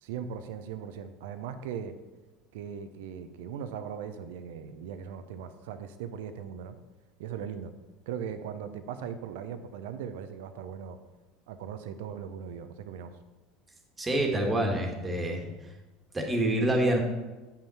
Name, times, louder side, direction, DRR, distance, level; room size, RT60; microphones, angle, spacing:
voice 1, 0.0-1.9 2.5-6.8 7.2-7.7 8.1-11.0 11.5-13.1, right 8 dB, 70° right, 10 dB, 0.6 m, -39 dB
voice 2, 14.0-15.5 16.1-17.0, right 1 dB, 20° right, 2 dB, 1.8 m, -26 dB
8.7 x 5.8 x 4.3 m, 1.2 s
hypercardioid pair, 70°, 0 cm